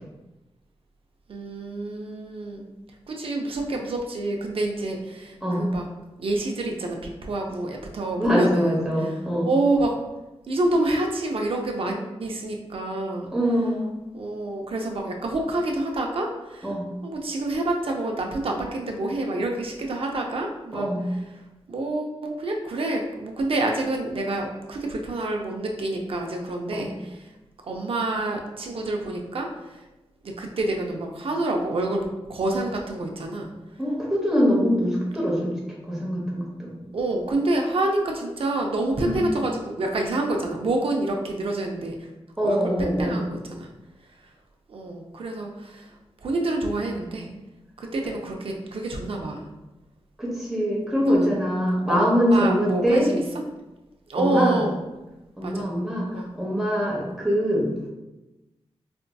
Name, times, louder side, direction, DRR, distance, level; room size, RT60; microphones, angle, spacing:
voice 1, 1.3-2.6 3.1-5.9 6.2-9.1 9.4-9.9 10.5-13.3 14.1-16.7 17.0-20.9 21.7-27.2 27.6-29.8 30.4-33.5 36.9-41.9 42.4-43.7 44.7-45.9 46.2-47.3 47.8-49.4 51.0-51.4 51.9-53.2 54.1-54.8 55.4-55.7 56.1-56.3, right 2 dB, 60° right, 2 dB, 0.5 m, -27 dB
voice 2, 8.2-9.5 13.3-13.9 16.6-16.9 20.7-21.1 26.7-26.9 33.8-35.5 35.8-36.7 39.0-39.3 42.4-43.2 50.2-53.2 54.2-54.6 55.4-57.7, equal, 5° right, -5 dB, 0.8 m, -23 dB
4.3 x 2.6 x 2.2 m, 1.0 s
wide cardioid pair, 145°, 10 cm